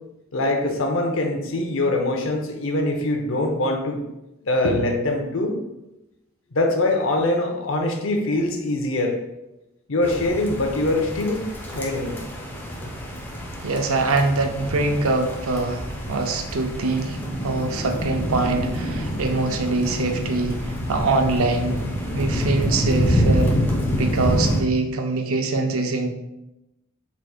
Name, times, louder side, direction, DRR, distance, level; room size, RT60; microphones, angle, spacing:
voice 1, 0.3-4.0 4.4-5.6 6.5-9.2 9.9-12.2, left 2 dB, 65° left, 3 dB, 0.7 m, -23 dB
sound 1, 10.0-24.6, equal, 10° left, 0.6 m, -26 dB
voice 2, 13.6-21.8 22.1-23.5 23.9-26.1, right 3 dB, 75° right, 5 dB, 0.5 m, -24 dB
4.6 x 4.1 x 2.4 m, 0.93 s
head